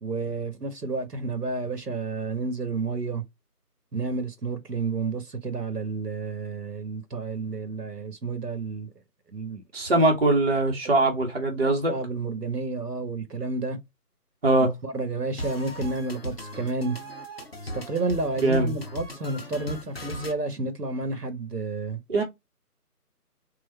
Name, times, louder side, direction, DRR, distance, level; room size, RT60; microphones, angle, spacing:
voice 1, 0.0-3.2 3.9-8.9 9.3-9.6 11.9-13.8 14.6-17.0 17.7-22.0, right 3 dB, 80° right, 1.3 m, -30 dB
voice 2, 9.7-11.9 14.4-14.7 18.4-18.7 22.1-22.2, right 2 dB, 40° right, 1.1 m, -21 dB
sound 1, 15.4-20.3, equal, 40° left, 0.6 m, -38 dB
4.0 x 2.4 x 4.3 m
figure-of-eight pair, 160°, 47 cm